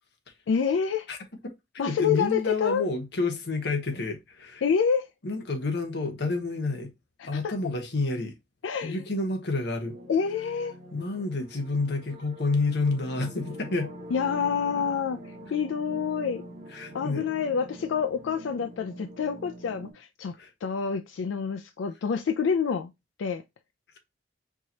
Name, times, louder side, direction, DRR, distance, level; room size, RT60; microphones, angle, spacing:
voice 1, 0.5-1.1 1.8-2.8 4.6-5.1 7.2-7.5 8.6-9.0 10.1-10.7 14.1-16.4 16.9-20.3 20.6-22.9 23.2-23.4, left 6 dB, 90° left, 0.4 m, -27 dB
voice 2, 1.7-4.6 5.2-6.9 7.2-8.3 8.8-9.9 10.9-13.9 16.7-17.2 20.4-20.5, left 3 dB, 65° left, 1.0 m, -29 dB
sound 1, 9.8-19.9, right 1 dB, 35° right, 1.5 m, -44 dB
4.6 x 2.9 x 2.7 m
head